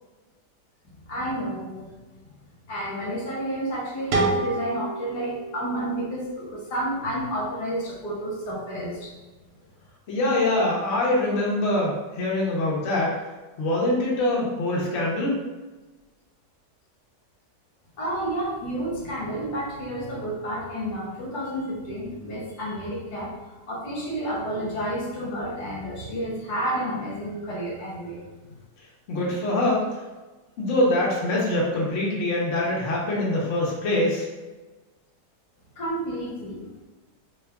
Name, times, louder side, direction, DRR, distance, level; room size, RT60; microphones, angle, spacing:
voice 1, 1.1-1.9 2.7-9.1 18.0-28.2 35.8-36.8, right 1 dB, 70° left, -4 dB, 1.3 m, -30 dB
sound 1, 4.1-7.0, right 3 dB, 70° right, 1.1 m, -29 dB
voice 2, 10.1-13.1 13.6-15.4 29.1-29.8 30.6-34.3, left 1 dB, 55° left, -4 dB, 0.9 m, -24 dB
2.9 x 2.3 x 3.4 m, 1.2 s
omnidirectional pair, 1.9 m